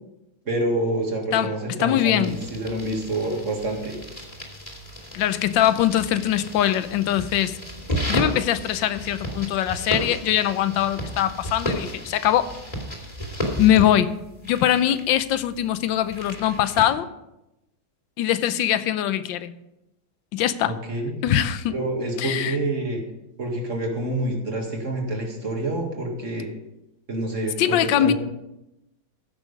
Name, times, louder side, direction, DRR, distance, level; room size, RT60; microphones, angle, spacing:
voice 1, 0.5-4.0 20.6-21.2 21.7-23.0 23.4-26.5 27.1-28.1, right 1 dB, 40° right, 2.2 m, -27 dB
voice 2, 1.8-2.4 5.1-7.6 8.1-12.5 13.6-14.1 14.4-17.1 18.2-19.6 20.3-20.8 21.2-21.8 22.2-22.6 27.6-28.1, left 11 dB, 75° left, 1.3 m, -22 dB
sound 1, 2.2-16.9, equal, 20° left, 2.4 m, -33 dB
15.0 x 6.4 x 5.1 m
omnidirectional pair, 2.2 m